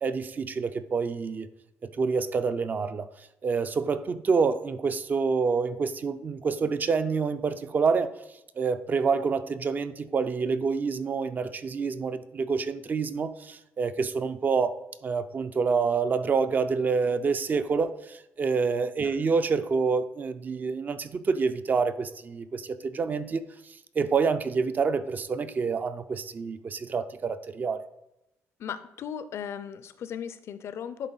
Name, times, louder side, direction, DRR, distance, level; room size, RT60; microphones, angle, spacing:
voice 1, 0.0-1.5 1.8-3.1 3.4-8.1 8.6-23.4 24.0-27.8, right 5 dB, 35° right, 12 dB, 0.5 m, -27 dB
voice 2, 28.6-31.1, left 8 dB, 55° left, 13 dB, 0.5 m, -36 dB
10.5 x 4.0 x 3.9 m, 0.89 s
cardioid pair, 125°, 5 cm